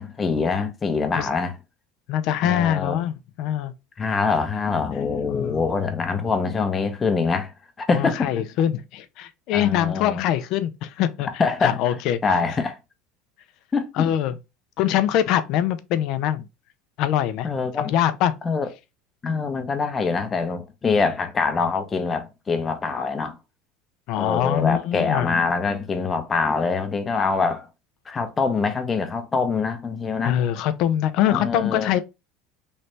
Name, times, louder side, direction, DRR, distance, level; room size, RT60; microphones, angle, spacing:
voice 1, 0.0-1.6 2.4-3.0 4.0-7.5 7.8-8.3 9.5-10.3 11.4-11.8 12.2-12.8 13.7-14.1 17.4-17.9 18.4-18.7 19.2-23.4 24.2-27.7 28.1-30.4 31.3-31.9, left 4 dB, 25° left, 0.7 m, -24 dB
voice 2, 2.1-3.7 5.3-5.7 7.9-11.3 11.6-12.4 14.0-14.4 14.8-16.5 17.0-17.5 17.8-18.3 24.1-25.4 30.2-32.0, left 11 dB, 55° left, 0.5 m, -23 dB
3.2 x 2.7 x 3.1 m
supercardioid pair, 120°, 0 cm